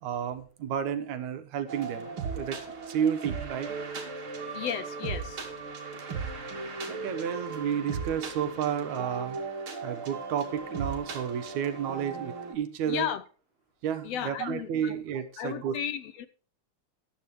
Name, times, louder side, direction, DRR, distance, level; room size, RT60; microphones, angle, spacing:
voice 1, 0.0-2.6 2.9-3.7 6.0-6.1 6.9-9.4 9.8-13.1 13.8-15.8, right 8 dB, 80° right, 2.6 m, -31 dB
sound 1, 1.7-12.5, right 4 dB, 45° right, 3.1 m, -37 dB
voice 2, 4.5-5.4 12.9-13.2 14.0-15.0 15.4-16.3, left 9 dB, 75° left, 1.7 m, -34 dB
14.5 x 11.5 x 3.2 m
omnidirectional pair, 3.3 m